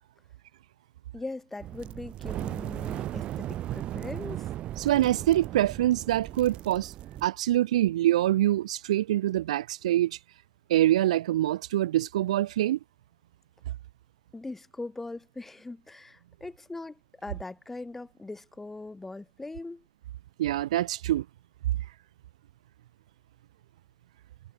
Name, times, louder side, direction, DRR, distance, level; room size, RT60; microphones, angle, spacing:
voice 1, 1.1-4.5 14.3-19.8, left 2 dB, 5° left, 4.1 m, -40 dB
sound 1, 1.6-7.3, right 13 dB, 30° right, 1.3 m, -36 dB
voice 2, 4.8-6.9 7.2-10.2 10.7-12.8 20.4-21.2, right 14 dB, 65° right, 1.3 m, -25 dB
hypercardioid pair, 140°, 4 cm